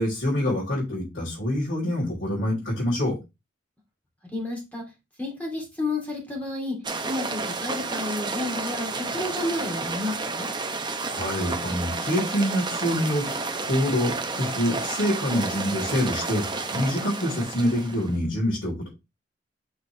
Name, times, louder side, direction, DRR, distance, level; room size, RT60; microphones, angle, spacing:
voice 1, 0.0-3.2 11.1-18.9, equal, 85° left, -7 dB, 3.6 m, -26 dB
voice 2, 4.3-4.8 5.2-6.8 7.0-10.5, left 2 dB, 10° left, -2 dB, 2.5 m, -31 dB
sound 1, 6.8-18.2, right 3 dB, 25° right, 0.7 m, -31 dB
5.9 x 5.9 x 3.2 m, 0.25 s
head